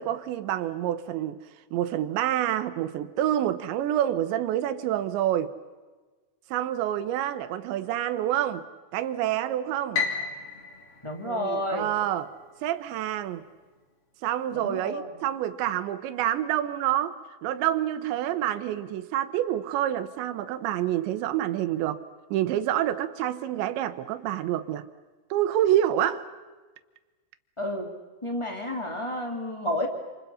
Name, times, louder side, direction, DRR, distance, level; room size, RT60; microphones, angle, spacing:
voice 1, 0.0-1.4 1.7-5.5 6.5-8.6 8.9-10.0 11.2-12.3 12.6-13.4 14.2-17.2 17.4-22.0 22.3-24.9 25.3-26.3, right 12 dB, 75° right, 3.0 m, -27 dB
Piano, 9.9-12.2, left 5 dB, 35° left, 3.1 m, -33 dB
voice 2, 11.0-11.9 14.5-15.1 27.6-27.9 28.2-29.9, left 1 dB, 10° left, 1.4 m, -30 dB
28.5 x 28.0 x 5.7 m
omnidirectional pair, 5.7 m